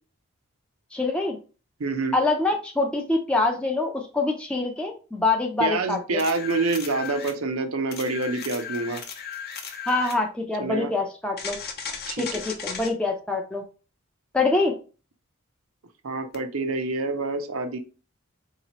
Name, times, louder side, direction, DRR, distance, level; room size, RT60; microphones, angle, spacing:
voice 1, 0.9-1.4 2.1-6.2 9.9-11.6 12.2-13.6 14.3-14.7, left 3 dB, 5° left, 1 dB, 0.5 m, -25 dB
voice 2, 1.8-2.2 5.6-9.0 10.6-10.9 12.1-12.4 16.0-17.8, right 3 dB, 70° right, 8 dB, 0.6 m, -27 dB
sound 1, 6.2-7.4 7.9-10.2 11.4-12.9 16.3-16.4, left 6 dB, 45° left, 0.6 m, -36 dB
3.9 x 2.9 x 2.9 m, 0.34 s
head